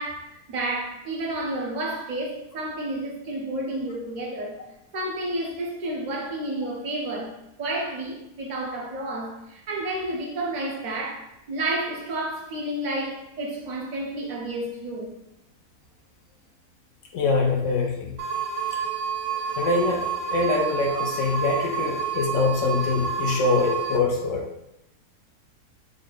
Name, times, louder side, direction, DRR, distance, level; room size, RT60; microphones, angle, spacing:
voice 1, 0.0-4.6 4.9-7.3 7.6-15.1 19.0-19.6, right 1 dB, 70° right, -2 dB, 0.4 m, -31 dB
voice 2, 17.1-18.1 19.6-24.4, left 3 dB, 70° left, 0 dB, 0.7 m, -24 dB
sound 1, 18.2-24.0, right 6 dB, 85° right, 1.2 m, -29 dB
3.6 x 3.1 x 2.4 m, 0.84 s
omnidirectional pair, 1.7 m